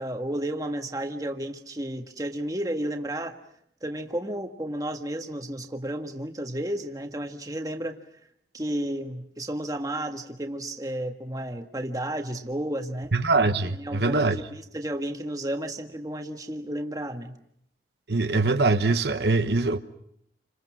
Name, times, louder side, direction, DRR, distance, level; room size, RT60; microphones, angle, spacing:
voice 1, 0.0-3.4 3.8-8.0 8.5-13.1 13.7-17.4, right 1 dB, 20° right, 1.6 m, -32 dB
voice 2, 13.1-14.4 18.1-19.8, right 3 dB, 70° right, 1.1 m, -23 dB
30.0 x 26.0 x 6.2 m
head